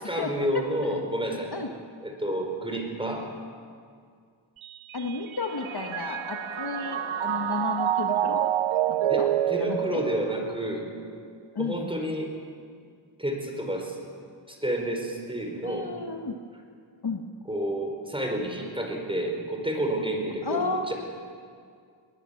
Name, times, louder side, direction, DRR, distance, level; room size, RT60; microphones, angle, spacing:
voice 1, 0.0-1.5 2.0-3.3 9.1-10.9 11.6-12.3 13.2-14.0 14.5-15.9 17.5-20.9, right 1 dB, 10° right, 2 dB, 5.2 m, -30 dB
Mallet percussion, 4.6-11.1, right 11 dB, 75° right, 0.7 m, -28 dB
voice 2, 4.9-8.5 8.9-9.3 9.6-10.0 11.5-11.9 15.6-16.4 17.0-17.2 20.4-20.9, left 4 dB, 50° left, 4 dB, 1.6 m, -32 dB
Singing / Musical instrument, 5.5-10.1, right 1 dB, 55° right, 6.4 m, -43 dB
23.5 x 19.5 x 7.2 m, 2.2 s
wide cardioid pair, 70°, 48 cm